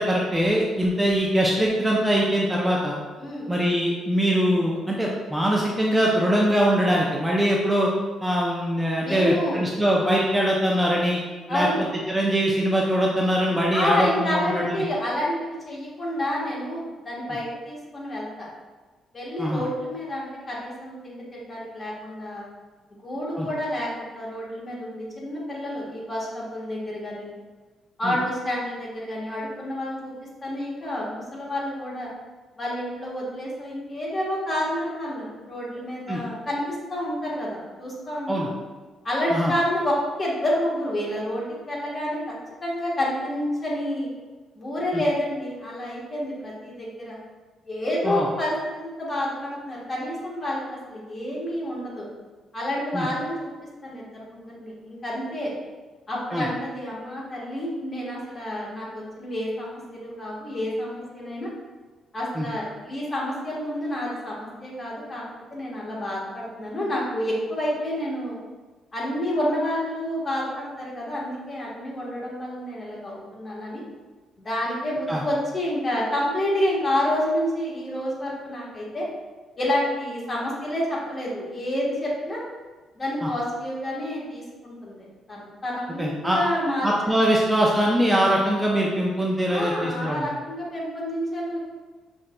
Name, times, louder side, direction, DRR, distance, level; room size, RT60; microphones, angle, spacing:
voice 1, 0.0-3.0 3.5-7.9 8.2-11.2 11.5-11.7 12.1-14.8 19.4-19.6 23.4-23.5 28.0-28.1 36.1-36.2 38.3-38.5 39.3-39.5 44.9-45.0 48.0-48.3 52.9-53.1 56.3-56.5 62.4-62.5 75.1-75.2 83.2-83.3 86.0-86.4 86.8-90.3, equal, 10° right, -3 dB, 0.5 m, -22 dB
voice 2, 3.2-3.5 9.0-9.6 11.5-11.8 13.7-18.5 19.1-22.4 22.9-27.3 28.0-30.1 30.4-32.1 32.6-38.5 39.0-39.9 40.2-42.2 42.6-44.1 44.5-47.2 47.6-52.1 52.5-53.5 53.8-55.5 56.1-61.5 62.1-65.2 65.5-68.4 68.9-73.8 74.4-79.0 79.6-82.4 83.0-86.9 89.4-91.6, left 1 dB, 35° left, -5 dB, 1.3 m, -29 dB
5.6 x 2.5 x 2.2 m, 1.3 s
cardioid pair, 90°, 0 cm